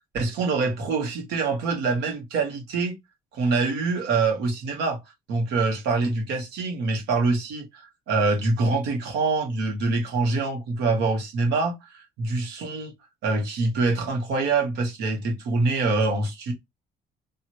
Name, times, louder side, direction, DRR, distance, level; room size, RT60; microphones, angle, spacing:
voice 1, 0.1-3.0 3.3-5.0 5.3-12.9 13.2-16.5, right 3 dB, 85° right, 1.7 m, -25 dB
3.1 x 3.0 x 4.5 m
cardioid pair, 110°, 17 cm